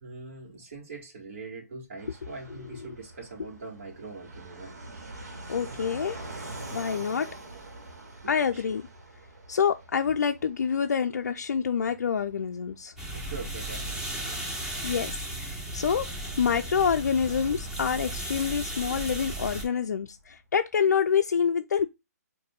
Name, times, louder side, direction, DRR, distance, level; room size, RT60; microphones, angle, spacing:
voice 1, 0.0-4.8 5.5-5.8 6.7-7.1 8.2-8.8 13.1-14.1, right 3 dB, 45° right, 1.8 m, -43 dB
Fixed-wing aircraft airplane, 2.0-20.3, right 2 dB, 70° right, 1.6 m, -46 dB
voice 2, 5.5-7.3 8.3-8.8 9.5-12.9 14.8-16.1 16.4-21.9, left 7 dB, 80° left, 0.4 m, -27 dB
sound 1, 13.0-19.6, right 1 dB, 5° right, 0.9 m, -35 dB
6.5 x 2.6 x 2.2 m
hypercardioid pair, 160°, 9 cm